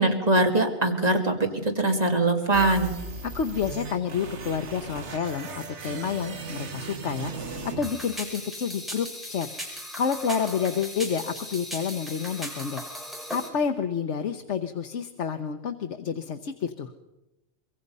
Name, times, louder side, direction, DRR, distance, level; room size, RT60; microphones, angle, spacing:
voice 1, 0.0-1.4 1.8-2.9, right 2 dB, 35° right, 3 dB, 2.5 m, -22 dB
sound 1, 2.5-8.6, right 4 dB, 80° right, 1.7 m, -38 dB
voice 2, 3.2-9.5 10.0-12.8 13.3-16.9, left 7 dB, 85° left, 6 dB, 1.3 m, -29 dB
sound 2, 7.8-13.5, equal, ahead, 5.2 m, -38 dB
24.5 x 22.5 x 5.5 m, 0.95 s
omnidirectional pair, 1.2 m